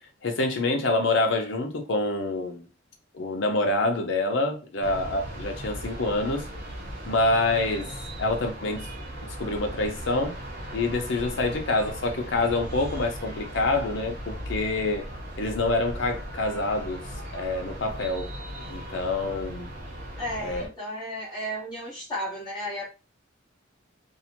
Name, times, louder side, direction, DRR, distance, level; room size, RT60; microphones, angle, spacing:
voice 1, 0.2-2.7 3.1-6.5 7.1-7.9 8.2-8.9 9.4-10.4 10.7-15.1 15.4-17.0 17.3-18.3 18.7-19.7 20.4-20.7, left 2 dB, 65° left, 0.6 m, -26 dB
sound 1, 4.8-20.7, equal, 50° right, 0.8 m, -38 dB
voice 2, 20.2-22.8, equal, 25° left, 1.1 m, -33 dB
2.6 x 2.1 x 2.8 m
head